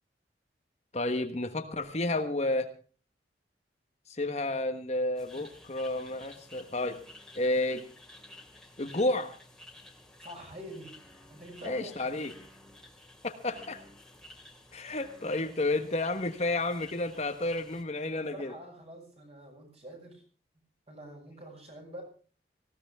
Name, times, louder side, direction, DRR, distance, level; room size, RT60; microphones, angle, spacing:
voice 1, 0.9-2.7 4.1-7.0 7.3-7.9 8.8-9.3 11.6-12.3 13.2-13.8 14.7-18.5, left 2 dB, 35° left, 7 dB, 1.3 m, -31 dB
sound 1, 5.1-17.8, left 1 dB, 5° left, 2.7 m, -53 dB
voice 2, 10.2-10.9 11.3-12.1 18.1-20.2 20.9-22.0, equal, 35° right, 2 dB, 7.6 m, -46 dB
19.0 x 16.5 x 3.6 m, 0.38 s
head